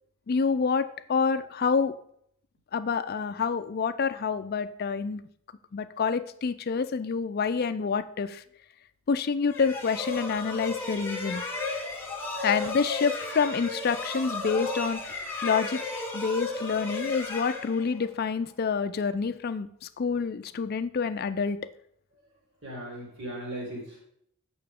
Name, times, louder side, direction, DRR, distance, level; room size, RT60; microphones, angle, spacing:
voice 1, 0.3-1.9 2.7-5.2 5.7-8.4 9.1-11.4 12.4-15.8 16.1-21.6, left 5 dB, 45° left, 11 dB, 0.4 m, -28 dB
sound 1, 9.5-18.2, left 3 dB, 10° left, 1.3 m, -34 dB
voice 2, 22.6-24.0, right 1 dB, 55° right, -4 dB, 3.4 m, -37 dB
8.7 x 5.8 x 3.6 m, 0.69 s
head